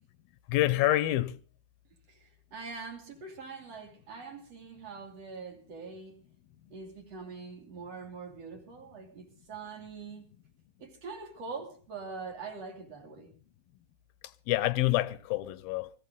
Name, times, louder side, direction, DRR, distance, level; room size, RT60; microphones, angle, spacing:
voice 1, 0.5-1.4 14.5-15.9, left 15 dB, 90° left, 2.7 m, -27 dB
voice 2, 2.1-6.1 6.7-10.2 10.8-13.3, right 4 dB, 45° right, 3.8 m, -43 dB
23.0 x 15.0 x 3.8 m
omnidirectional pair, 4.1 m